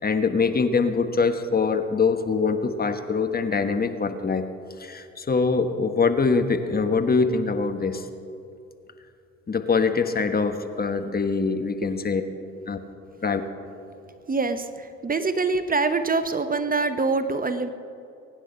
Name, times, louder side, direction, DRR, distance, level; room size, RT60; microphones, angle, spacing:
voice 1, 0.0-4.5 4.8-8.1 9.5-12.2 12.7-12.8 13.2-13.4, left 4 dB, 30° left, 8 dB, 1.4 m, -23 dB
voice 2, 14.3-17.7, right 3 dB, 25° right, 10 dB, 1.0 m, -25 dB
23.0 x 10.0 x 5.6 m, 2.6 s
hypercardioid pair, 60°, 32 cm